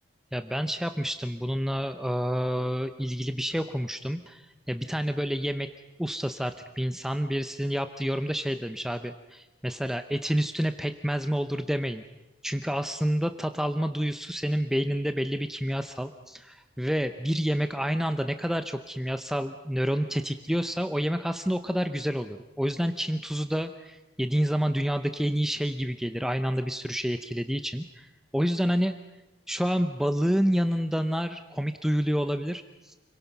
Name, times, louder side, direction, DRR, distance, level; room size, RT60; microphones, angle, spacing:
voice 1, 0.3-5.7 6.0-12.0 12.4-28.9 29.5-33.0, equal, ahead, 8 dB, 0.7 m, -28 dB
29.5 x 23.0 x 6.0 m, 1.1 s
head